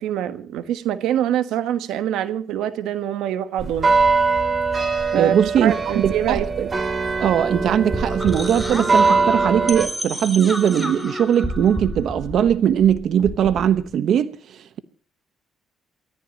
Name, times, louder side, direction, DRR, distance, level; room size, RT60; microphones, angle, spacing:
voice 1, 0.0-3.9 5.1-5.3 5.6-6.4, right 11 dB, 90° right, 1.3 m, -24 dB
sound 1, 3.6-9.9, right 4 dB, 35° right, 2.8 m, -22 dB
voice 2, 5.1-6.7 7.2-14.8, right 9 dB, 70° right, 1.1 m, -20 dB
sound 2, 7.2-13.9, equal, 5° right, 4.2 m, -30 dB
29.0 x 14.0 x 3.0 m
cardioid pair, 90°, 0 cm